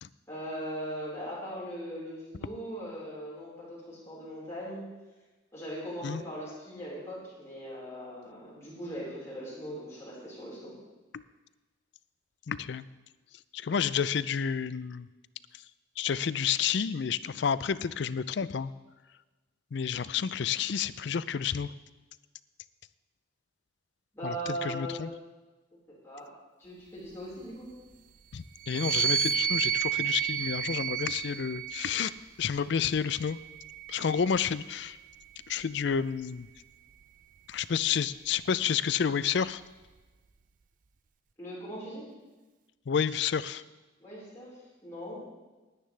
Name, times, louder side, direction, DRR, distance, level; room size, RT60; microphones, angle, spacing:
voice 1, 0.3-4.8 5.5-10.7 24.1-25.1 26.0-26.3 26.6-27.7 41.4-42.0 44.0-44.5 44.8-45.2, equal, 15° left, -9 dB, 4.5 m, -39 dB
voice 2, 12.5-12.9 13.5-15.1 16.0-18.7 19.7-21.7 24.2-25.1 28.3-32.1 32.4-33.4 33.9-35.0 35.5-36.5 37.5-39.6 42.9-43.6, left 7 dB, 60° left, 16 dB, 0.4 m, -30 dB
sound 1, 28.6-32.2 33.0-34.6, right 8 dB, 40° right, 0.4 m, -31 dB
19.0 x 10.0 x 3.3 m, 1.2 s
head